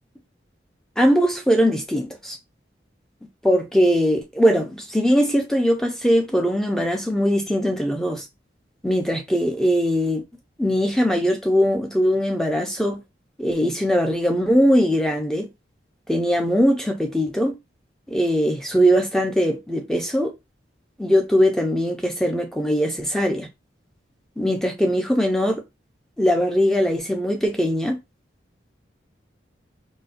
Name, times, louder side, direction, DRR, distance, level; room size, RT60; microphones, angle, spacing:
voice 1, 1.0-2.4 3.4-8.3 8.8-10.2 10.6-13.0 13.4-15.5 16.1-17.6 18.1-20.3 21.0-23.5 24.4-25.6 26.2-28.0, equal, 5° left, 0.4 m, -20 dB
3.9 x 2.1 x 2.4 m
head